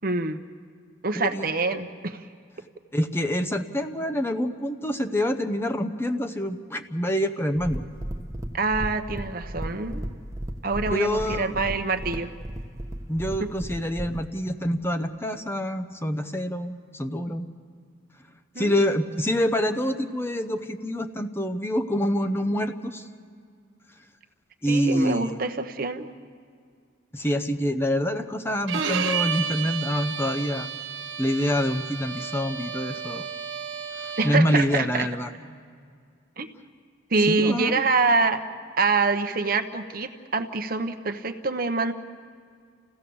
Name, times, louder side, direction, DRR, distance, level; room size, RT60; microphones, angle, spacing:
voice 1, 0.0-0.4 1.0-2.3 8.5-10.0 10.6-12.3 18.5-18.8 24.7-26.1 34.2-35.1 36.4-36.5 37.1-38.4 38.8-41.9, right 3 dB, 50° right, 8 dB, 0.9 m, -25 dB
voice 2, 1.1-1.5 2.9-7.8 10.9-11.5 13.1-17.5 18.6-23.1 24.6-25.3 27.1-30.7 31.2-33.3 34.0-35.3 37.3-37.8, equal, 10° left, 7 dB, 0.7 m, -26 dB
sound 1, 7.6-14.3, right 1 dB, 15° right, 1.1 m, -35 dB
Bowed string instrument, 28.7-34.5, right 7 dB, 80° right, 1.2 m, -32 dB
29.0 x 16.0 x 7.0 m, 2.1 s
head